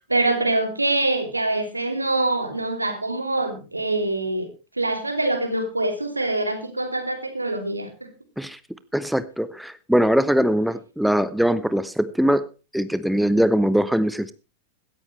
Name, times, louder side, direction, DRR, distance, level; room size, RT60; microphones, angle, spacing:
voice 1, 0.1-4.5 4.8-8.1, right 2 dB, 85° right, 7 dB, 3.0 m, -24 dB
voice 2, 8.9-12.5 12.7-14.3, equal, ahead, 15 dB, 0.8 m, -21 dB
16.5 x 14.0 x 3.2 m, 0.31 s
figure-of-eight pair, 90°, 0 cm